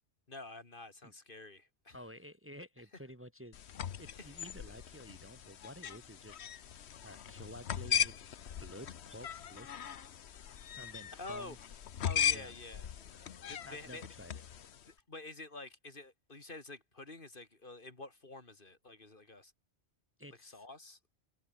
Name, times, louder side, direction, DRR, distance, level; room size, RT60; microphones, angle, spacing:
voice 1, 0.3-2.0 4.1-4.5 11.1-11.6 12.0-14.0 14.9-19.5 20.4-21.0, left 2 dB, 50° left, 2.7 m, -49 dB
voice 2, 1.9-6.6 7.0-8.2 8.6-9.7 10.8-11.6 12.3-12.5 13.6-14.4 20.2-20.6, equal, 10° right, 1.6 m, -51 dB
sound 1, 3.5-14.9, left 9 dB, 70° left, 1.2 m, -39 dB
omnidirectional pair, 1.2 m